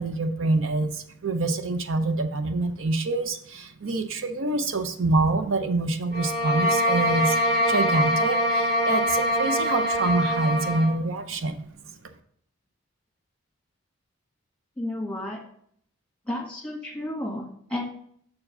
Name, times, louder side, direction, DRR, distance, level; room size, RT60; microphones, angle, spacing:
voice 1, 0.0-7.4 7.7-11.6, right 2 dB, 70° right, 8 dB, 0.6 m, -26 dB
sound 1, 6.1-11.0, equal, 45° right, 2.3 m, -24 dB
voice 2, 14.8-15.4 16.3-17.8, left 1 dB, 5° left, 0 dB, 1.7 m, -32 dB
6.5 x 4.7 x 5.5 m, 0.64 s
head